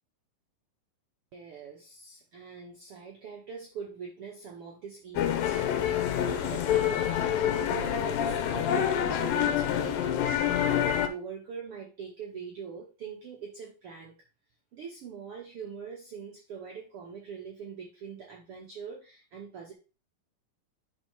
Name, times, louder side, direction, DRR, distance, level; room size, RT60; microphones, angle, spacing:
voice 1, 1.3-10.1 10.6-14.1 14.7-19.7, right 6 dB, 85° right, 1 dB, 1.2 m, -43 dB
sound 1, 5.2-11.1, left 10 dB, 90° left, 2.5 m, -27 dB
10.5 x 3.7 x 4.4 m, 0.33 s
omnidirectional pair, 4.1 m